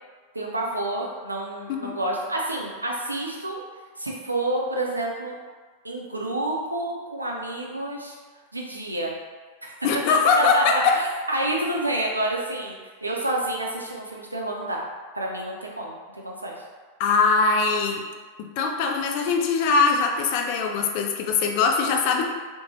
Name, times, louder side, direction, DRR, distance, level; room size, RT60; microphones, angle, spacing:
voice 1, 0.3-3.6 4.0-5.4 5.8-8.2 8.5-9.1 9.6-9.7 10.4-14.8 15.1-16.6, right 1 dB, 85° right, -2 dB, 0.4 m, -29 dB
voice 2, 9.8-11.0 17.0-18.0 18.4-22.3, left 5 dB, 45° left, 2 dB, 0.3 m, -22 dB
2.6 x 2.1 x 2.8 m, 1.5 s
figure-of-eight pair, 90°, 0 cm